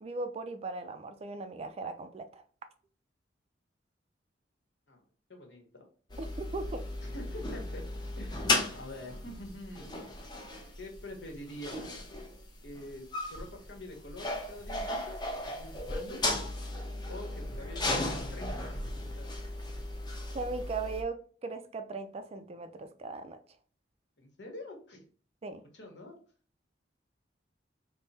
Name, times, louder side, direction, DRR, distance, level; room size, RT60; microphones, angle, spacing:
voice 1, 0.0-2.4 6.2-6.8 20.3-23.4 25.4-25.6, right 3 dB, 35° right, 0.4 m, -38 dB
voice 2, 5.3-5.9 7.0-7.8 8.2-10.0 10.8-12.0 12.6-15.2 15.6-16.3 17.1-19.4 24.2-25.0 25.7-26.2, left 1 dB, 70° left, 1.0 m, -46 dB
sound 1, 6.1-21.0, left 2 dB, 25° left, 0.7 m, -35 dB
3.5 x 2.0 x 4.1 m
head